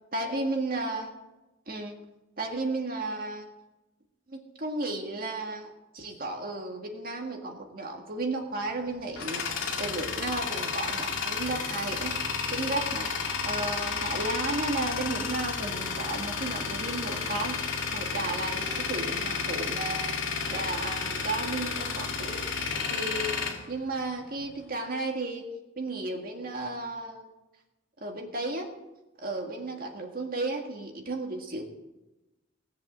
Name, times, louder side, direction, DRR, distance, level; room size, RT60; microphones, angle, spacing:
voice 1, 0.1-1.1 1.7-1.9 2.4-3.5 4.3-12.2 12.5-13.1 13.4-22.4 22.9-25.4 25.8-27.3 28.0-28.7 29.2-31.6, right 2 dB, 50° right, 2 dB, 1.8 m, -34 dB
Tools, 8.7-24.5, left 5 dB, 85° left, 2.2 m, -32 dB
18.0 x 8.1 x 7.4 m, 1.0 s
head